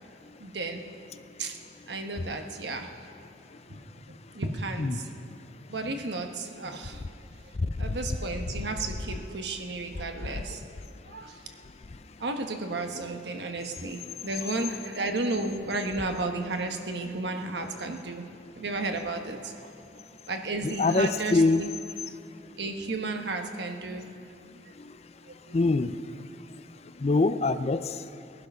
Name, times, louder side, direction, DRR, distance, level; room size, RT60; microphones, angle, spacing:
voice 1, 0.4-0.9 1.4-1.6 1.9-2.9 3.7-3.8 4.3-5.1 5.7-7.1 7.8-10.6 11.1-11.4 12.2-18.2 18.6-19.7 20.3-21.7 22.6-24.1 24.5-24.6 25.3-25.5, right 2 dB, 70° right, 5 dB, 1.2 m, -33 dB
voice 2, 7.6-8.0 20.8-21.6 25.5-26.0 27.0-28.0, left 3 dB, 35° left, 12 dB, 0.4 m, -24 dB
19.0 x 11.5 x 5.6 m, 2.5 s
head